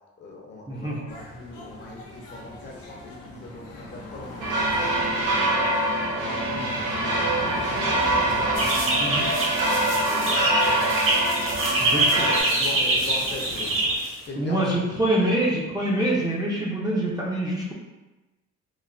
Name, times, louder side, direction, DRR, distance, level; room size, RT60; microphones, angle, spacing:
voice 1, 0.2-8.5 9.1-11.2 12.1-13.8 14.3-15.4, left 2 dB, 35° left, -1 dB, 0.6 m, -40 dB
sound 1, 1.1-14.0, left 1 dB, 90° left, 0.7 m, -39 dB
sound 2, 4.4-12.4, right 1 dB, 85° right, 0.6 m, -24 dB
sound 3, 8.5-14.3, right 1 dB, 45° right, 0.9 m, -25 dB
voice 2, 11.8-12.3 14.4-17.7, right 1 dB, 15° right, -5 dB, 0.5 m, -25 dB
3.1 x 2.1 x 2.5 m, 1.1 s
cardioid pair, 90°, 30 cm